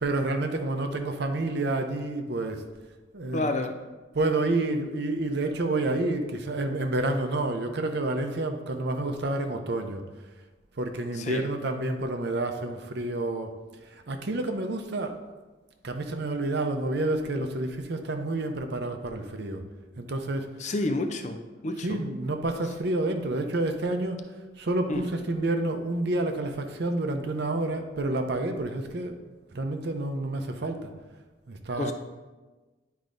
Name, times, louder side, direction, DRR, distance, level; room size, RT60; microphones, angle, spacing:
voice 1, 0.0-2.6 3.1-3.6 4.1-10.0 10.8-13.5 13.9-15.2 15.8-19.6 20.0-20.5 21.8-24.3 24.6-30.9 31.5-31.9, right 2 dB, 60° right, 6 dB, 0.6 m, -29 dB
voice 2, 3.3-3.7 11.1-11.4 20.6-21.4 21.6-22.0 24.9-25.0 31.8-31.9, left 2 dB, 35° left, 6 dB, 0.5 m, -29 dB
10.5 x 4.7 x 2.6 m, 1.2 s
head